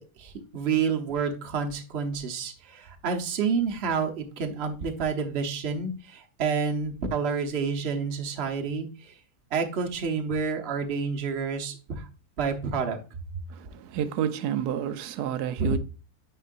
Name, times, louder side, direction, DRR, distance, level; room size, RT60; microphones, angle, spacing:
voice 1, 0.0-8.9 9.5-12.1 12.4-13.0, right 5 dB, 45° right, 1.1 m, -29 dB
voice 2, 13.5-15.8, right 9 dB, 85° right, 1.2 m, -30 dB
9.9 x 4.5 x 2.5 m
omnidirectional pair, 1.7 m